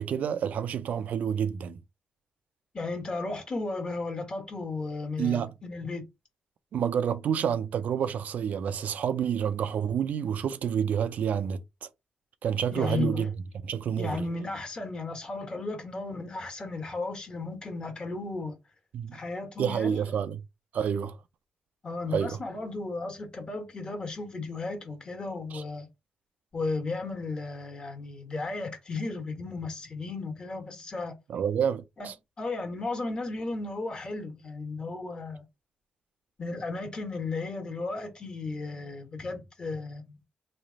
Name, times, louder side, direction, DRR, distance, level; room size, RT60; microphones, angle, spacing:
voice 1, 0.0-1.8 5.2-5.5 6.7-11.6 12.4-13.3 13.6-14.3 18.9-19.2 19.6-20.4 20.7-21.2 22.1-22.4 25.5-25.6 31.3-32.1, right 8 dB, 70° right, 0.4 m, -28 dB
voice 2, 2.7-6.0 12.7-13.3 14.0-18.5 19.1-20.0 21.8-25.9 26.5-31.2 32.0-32.1 32.4-35.4 36.4-40.2, left 3 dB, 35° left, 1.4 m, -34 dB
3.1 x 2.5 x 3.9 m
cardioid pair, 95°, 3 cm